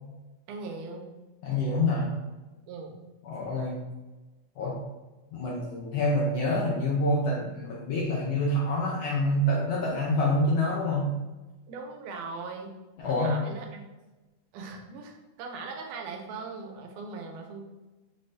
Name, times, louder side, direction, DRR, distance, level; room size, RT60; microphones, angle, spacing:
voice 1, 0.5-1.1 2.7-2.9 11.7-12.7 13.1-13.9 14.5-17.7, right 4 dB, 80° right, 2 dB, 2.2 m, -40 dB
voice 2, 1.4-2.2 3.2-3.9 4.6-4.8 5.3-11.2 13.0-13.4, left 1 dB, 75° left, -4 dB, 1.5 m, -27 dB
5.6 x 2.6 x 3.2 m, 1.1 s
omnidirectional pair, 3.6 m